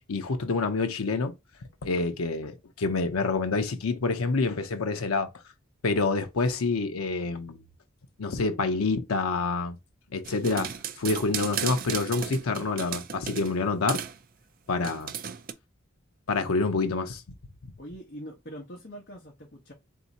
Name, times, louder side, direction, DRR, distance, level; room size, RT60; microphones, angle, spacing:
voice 1, 0.1-1.3 1.8-5.3 5.8-7.6 8.2-9.8 10.1-10.7 11.0-14.0 14.7-15.1 16.3-17.2, left 3 dB, 90° left, 0.6 m, -27 dB
sound 1, 10.2-13.6 13.9-14.2 14.8-15.5, right 8 dB, 40° right, 0.4 m, -34 dB
voice 2, 17.8-19.7, equal, 50° left, 1.0 m, -43 dB
3.6 x 2.7 x 4.1 m
head